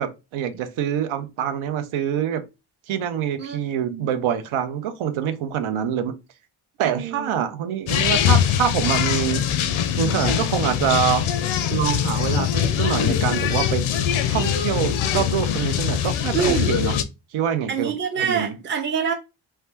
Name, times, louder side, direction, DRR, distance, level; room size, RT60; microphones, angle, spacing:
voice 1, 0.0-2.4 2.9-6.1 6.8-9.5 10.0-11.3 11.7-13.8 14.3-17.0 17.3-18.5, right 9 dB, 80° right, 0.6 m, -25 dB
voice 2, 3.4-4.1 6.8-7.5 16.3-16.8 17.7-19.1, right 6 dB, 25° right, 0.5 m, -26 dB
sound 1, 7.9-17.0, left 9 dB, 75° left, 0.5 m, -22 dB
2.7 x 2.2 x 3.2 m
cardioid pair, 90°, 49 cm